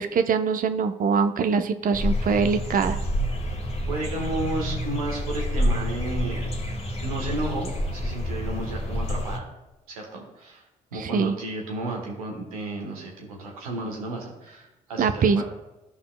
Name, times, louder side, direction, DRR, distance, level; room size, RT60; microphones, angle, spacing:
voice 1, 0.0-3.0 11.0-11.3 15.0-15.4, right 5 dB, 50° right, 9 dB, 0.6 m, -23 dB
sound 1, 1.9-9.4, equal, 35° left, 1.3 m, -28 dB
voice 2, 3.9-6.5 7.0-9.5 9.9-10.7 10.9-15.4, right 2 dB, 90° right, 0 dB, 1.2 m, -33 dB
12.5 x 5.6 x 2.2 m, 0.99 s
hypercardioid pair, 45°, 18 cm